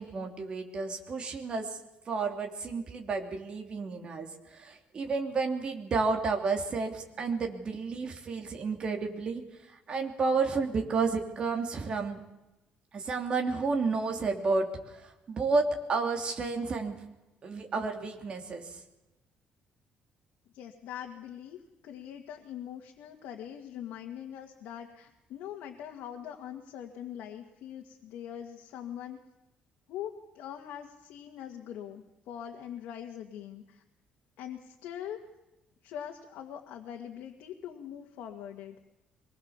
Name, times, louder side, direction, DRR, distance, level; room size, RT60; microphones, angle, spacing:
voice 1, 0.0-1.8 2.1-9.4 9.9-12.2 12.9-17.0 17.4-18.8, right 4 dB, 35° right, 3 dB, 3.0 m, -31 dB
voice 2, 20.5-29.2 29.9-33.8 34.4-35.2 35.8-38.8, left 10 dB, 90° left, 2 dB, 1.9 m, -42 dB
23.5 x 20.5 x 7.3 m, 0.99 s
cardioid pair, 155°, 3 cm